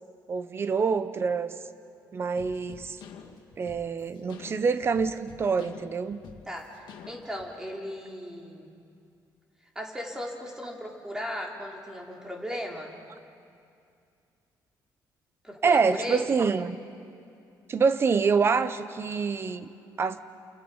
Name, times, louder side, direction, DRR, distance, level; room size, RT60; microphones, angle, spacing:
voice 1, 0.3-1.6 2.1-3.0 3.6-6.2 15.6-16.8 17.7-19.7 20.0-20.2, right 5 dB, 35° right, 12 dB, 1.0 m, -26 dB
sound 1, 2.4-7.5, left 7 dB, 75° left, 2.4 m, -48 dB
voice 2, 7.1-8.7 9.8-12.9 15.4-16.4, left 1 dB, 10° right, 0 dB, 3.6 m, -36 dB
30.0 x 29.0 x 5.6 m, 2.5 s
cardioid pair, 135°, 7 cm